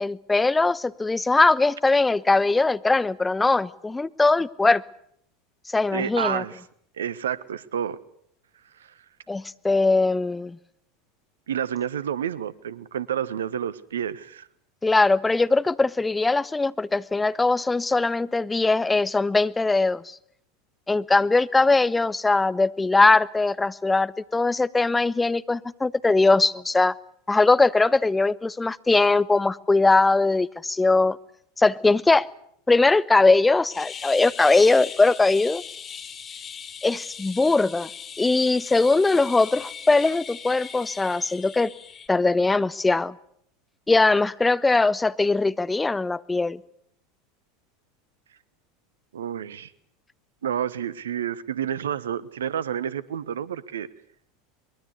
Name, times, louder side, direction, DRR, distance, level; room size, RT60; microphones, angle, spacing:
voice 1, 0.0-4.8 5.7-6.4 9.3-10.6 14.8-20.2 20.9-26.9 27.3-31.2 31.6-32.3 32.7-35.6 36.8-37.9 38.2-41.7 42.1-43.1 43.9-46.6, left 3 dB, 10° left, 0.9 m, -21 dB
voice 2, 5.9-6.6 7.0-8.0 8.8-8.9 11.5-14.5 49.1-49.7 50.4-53.9, right 9 dB, 70° right, 1.3 m, -29 dB
sound 1, 33.7-42.1, left 7 dB, 30° left, 3.0 m, -39 dB
23.5 x 22.0 x 8.1 m
figure-of-eight pair, 80°, 0 cm